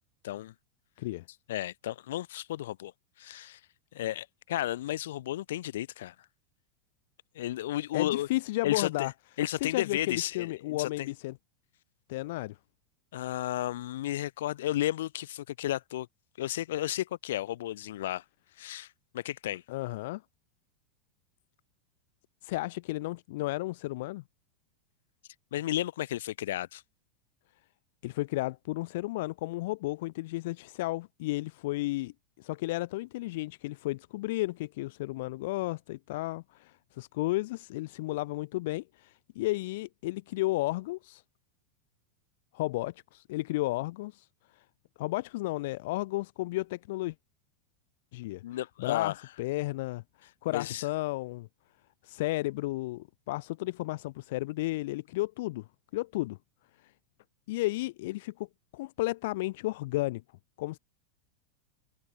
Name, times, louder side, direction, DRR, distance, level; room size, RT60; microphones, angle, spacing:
voice 1, 1.5-2.9 3.2-3.6 3.9-6.1 7.4-8.3 8.6-9.1 9.4-11.1 13.1-16.1 16.4-18.2 18.6-18.9 19.1-19.6 25.5-26.8 48.4-49.2 50.5-50.8, left 13 dB, 75° left, 2.1 m, -33 dB
voice 2, 7.9-9.1 9.6-11.3 12.1-12.6 19.7-20.2 22.4-24.2 28.0-41.2 42.5-44.3 45.0-47.1 48.1-48.4 48.8-50.0 50.4-51.5 52.0-55.6 55.9-56.4 57.5-58.5 58.7-60.2 60.6-60.8, left 19 dB, 50° left, 1.2 m, -33 dB
supercardioid pair, 175°, 0 cm